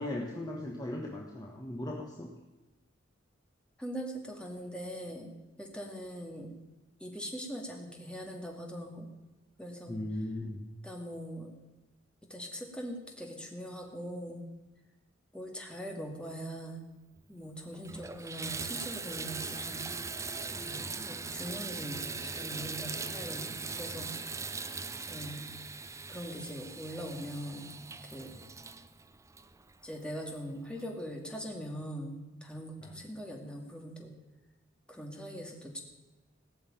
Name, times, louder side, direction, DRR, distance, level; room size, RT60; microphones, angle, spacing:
voice 1, 0.0-2.3 9.9-10.6 32.8-32.9, left 1 dB, 20° left, -1 dB, 1.3 m, -37 dB
voice 2, 3.8-5.3 5.6-6.5 7.0-9.1 9.6-9.9 10.8-11.5 12.3-14.5 15.3-16.8 17.3-19.8 20.5-24.1 24.4-24.6 25.1-25.4 26.1-27.7 28.1-28.4 29.8-34.1 34.9-35.8, equal, 5° left, 0 dB, 2.3 m, -41 dB
Water tap faucet / Bathtub (filling or washing), 17.2-17.3 17.7-30.1 30.8-30.9 31.4-31.5, right 4 dB, 15° right, 0.6 m, -40 dB
17.5 x 6.5 x 9.2 m, 1.1 s
head